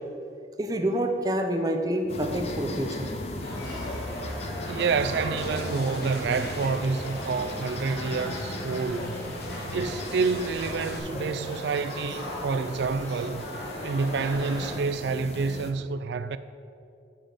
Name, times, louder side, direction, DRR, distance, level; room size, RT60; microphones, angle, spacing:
voice 1, 0.6-3.1, right 1 dB, 20° right, 0.5 m, -27 dB
sound 1, 2.1-15.7, left 1 dB, 35° left, 0.5 m, -38 dB
sound 2, 3.4-14.7, equal, 80° left, 1.9 m, -38 dB
voice 2, 4.7-9.2 9.7-13.5 13.8-16.4, right 4 dB, 70° right, 0.3 m, -28 dB
sound 3, 5.0-11.0, left 1 dB, 60° left, 1.0 m, -41 dB
6.1 x 5.0 x 6.3 m
head